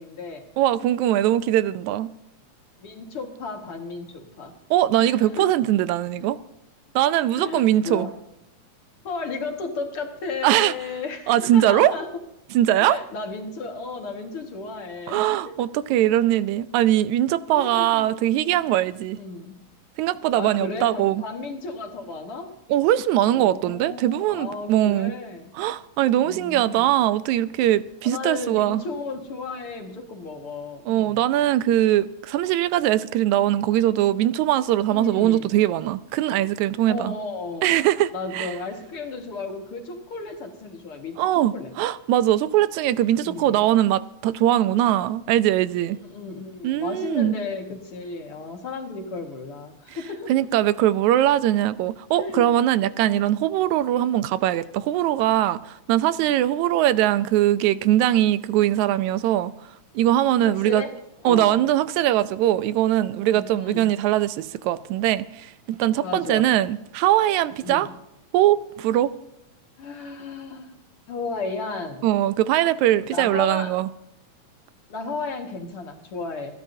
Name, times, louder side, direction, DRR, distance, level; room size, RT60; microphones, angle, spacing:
voice 1, 0.0-0.5 2.8-4.5 5.0-5.6 7.3-8.1 9.0-12.1 12.8-15.5 17.5-18.1 19.2-19.6 20.4-22.5 23.3-25.5 26.2-26.9 28.0-31.2 34.9-35.5 36.9-37.8 38.1-41.7 43.2-43.6 45.9-50.3 52.2-52.6 53.1-53.5 60.4-61.0 61.2-61.6 63.3-63.9 66.0-66.5 67.6-67.9 69.8-70.7 71.1-72.1 73.1-73.7 74.9-76.6, left 4 dB, 50° left, 2.5 m, -34 dB
voice 2, 0.6-2.1 4.7-6.4 7.0-8.1 10.4-10.7 11.3-11.9 12.5-13.0 15.1-19.2 20.0-21.2 22.7-25.1 25.6-28.8 30.9-37.1 37.6-38.5 41.2-46.0 46.6-47.3 50.3-59.5 60.0-60.8 61.3-67.9 68.3-69.1 72.0-73.9, right 13 dB, 85° right, 2.0 m, -21 dB
28.5 x 11.5 x 2.7 m
omnidirectional pair, 3.3 m